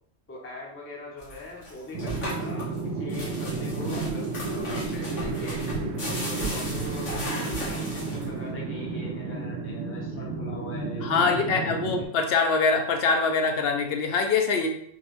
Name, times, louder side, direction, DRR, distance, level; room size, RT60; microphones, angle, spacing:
voice 1, 0.3-5.6 6.2-11.7 12.0-12.1, left 2 dB, 15° left, -3 dB, 0.6 m, -41 dB
sound 1, 1.2-8.5, equal, 85° left, 1.5 m, -36 dB
sound 2, 1.9-12.0, right 3 dB, 90° right, 0.9 m, -32 dB
voice 2, 11.0-14.7, left 4 dB, 65° left, 4 dB, 0.7 m, -24 dB
3.8 x 2.9 x 3.0 m, 0.68 s
omnidirectional pair, 1.2 m